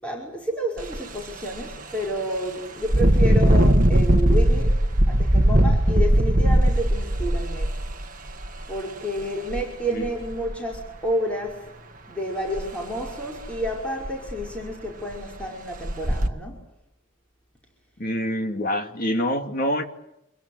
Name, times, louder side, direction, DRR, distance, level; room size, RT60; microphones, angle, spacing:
voice 1, 0.0-4.8 5.1-7.8 8.7-11.7 12.1-16.6, equal, 5° left, -2 dB, 5.5 m, -30 dB
Engine, 0.8-1.0 1.5-1.6 2.8-8.6 9.5-9.6 10.1-10.8 12.6-12.7 13.1-13.2 13.6-13.7 14.1-14.6 15.1-15.2 15.8-16.3, right 1 dB, 35° right, 1.7 m, -19 dB
voice 2, 18.0-19.9, equal, 40° left, 6 dB, 2.7 m, -26 dB
27.5 x 22.5 x 8.3 m, 0.86 s
head